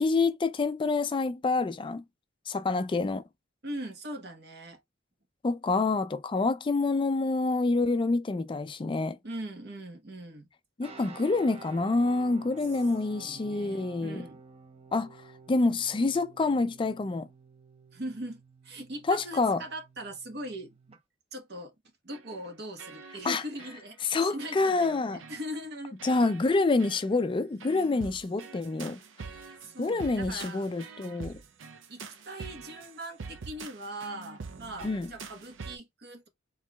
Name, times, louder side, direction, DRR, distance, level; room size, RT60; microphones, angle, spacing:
voice 1, 0.0-2.0 2.5-3.2 5.4-9.2 10.8-14.2 14.9-15.1 15.5-17.3 19.1-19.6 23.2-23.4 24.1-25.2 26.0-29.0 29.8-31.4 34.8-35.1, left 3 dB, 25° left, 0.4 m, -27 dB
voice 2, 3.6-4.8 9.2-10.5 13.1-14.4 17.9-21.0 21.3-21.7 22.0-26.0 29.6-30.7 31.9-36.3, right 1 dB, 60° right, 1.1 m, -40 dB
sound 1, 10.8-21.0, right 4 dB, 35° right, 0.7 m, -51 dB
sound 2, 22.1-22.5 22.8-23.3 23.6-24.1 24.4-24.9 25.2-25.4 26.0-26.5 26.8-27.0 27.6-35.8, right 4 dB, 80° right, 0.6 m, -45 dB
4.5 x 3.0 x 2.3 m
head